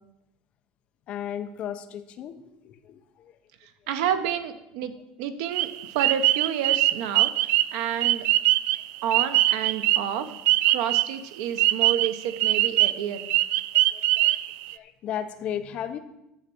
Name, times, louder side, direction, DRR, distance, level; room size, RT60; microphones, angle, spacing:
voice 1, 1.1-3.4 13.7-14.4 14.7-16.0, left 9 dB, 35° left, 8 dB, 0.8 m, -35 dB
voice 2, 3.6-4.9 5.2-8.3 9.0-10.4 10.7-13.3, right 9 dB, 75° right, 9 dB, 1.1 m, -30 dB
sound 1, 5.5-11.2 11.6-14.7, right 16 dB, 55° right, 0.3 m, -22 dB
11.0 x 6.7 x 6.1 m, 0.87 s
cardioid pair, 175°, 3 cm